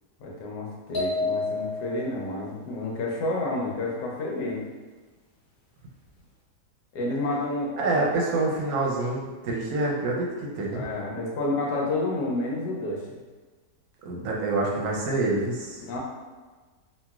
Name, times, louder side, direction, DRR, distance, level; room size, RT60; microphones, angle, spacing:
voice 1, 0.2-4.7 6.9-8.2 9.7-9.8 10.7-13.2 15.9-16.0, left 2 dB, 80° left, -2 dB, 1.2 m, -30 dB
sound 1, 0.9-2.1, left 3 dB, 60° left, 1.2 m, -28 dB
voice 2, 7.8-10.8 14.0-15.8, right 2 dB, 70° right, -2 dB, 1.0 m, -27 dB
3.0 x 2.6 x 2.3 m, 1.3 s
omnidirectional pair, 1.8 m